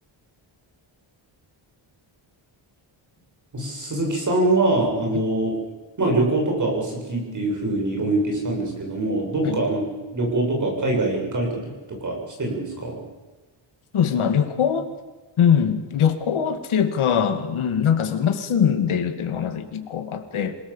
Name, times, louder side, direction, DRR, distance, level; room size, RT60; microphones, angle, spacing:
voice 1, 3.5-5.5 6.0-9.9 10.1-13.0, right 2 dB, 35° right, 0 dB, 7.6 m, -24 dB
voice 2, 13.9-14.9 15.4-20.6, left 8 dB, 80° left, 7 dB, 2.5 m, -22 dB
27.5 x 18.5 x 7.4 m, 1.3 s
wide cardioid pair, 180°, 49 cm